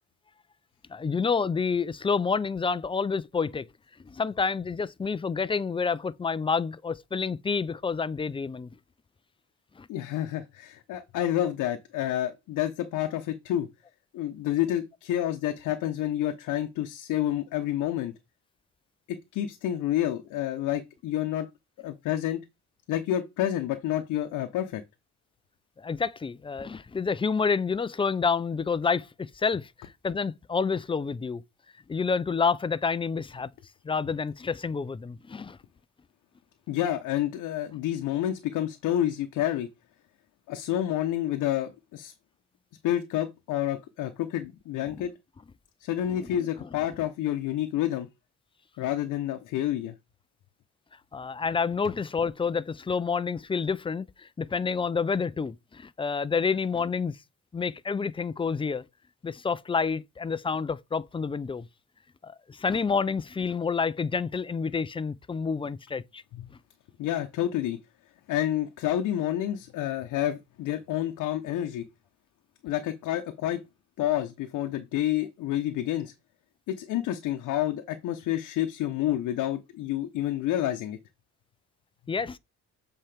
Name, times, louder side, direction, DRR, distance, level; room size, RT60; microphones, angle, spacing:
voice 1, 0.9-3.7 4.0-8.7 9.8-9.9 25.8-31.4 31.9-33.5 33.8-35.6 45.0-45.1 46.2-46.3 51.1-57.2 57.5-58.8 59.2-61.7 62.2-66.2 66.5-66.6 82.1-82.4, left 5 dB, 20° left, 0.4 m, -29 dB
voice 2, 9.9-13.7 14.1-18.1 19.1-21.5 21.8-22.4 22.9-24.8 36.7-39.7 40.5-42.1 42.8-45.1 45.8-48.1 48.8-49.9 66.3-66.5 67.0-67.8 68.3-71.8 72.6-73.6 74.0-76.1 76.7-81.0, left 12 dB, 85° left, 0.8 m, -29 dB
7.5 x 4.4 x 3.4 m
cardioid pair, 90°, 30 cm